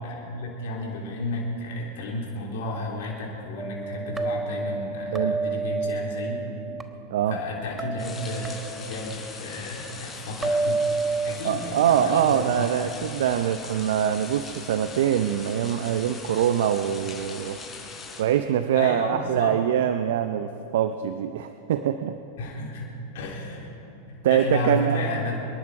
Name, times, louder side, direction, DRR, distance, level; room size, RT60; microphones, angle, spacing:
voice 1, 0.0-6.4 7.3-10.9 11.2-12.9 18.7-19.6 22.4-23.7 24.1-25.4, left 2 dB, 70° left, -2 dB, 3.4 m, -32 dB
sound 1, 3.6-6.8 7.8-9.0 10.4-11.3, right 3 dB, 15° right, 1.0 m, -29 dB
sound 2, 8.0-18.2, left 4 dB, 20° left, 4.4 m, -41 dB
voice 2, 11.4-17.6 18.2-22.2 24.2-25.0, right 10 dB, 70° right, 10 dB, 0.6 m, -24 dB
26.0 x 11.0 x 4.8 m, 3.0 s
hypercardioid pair, 105°, 0 cm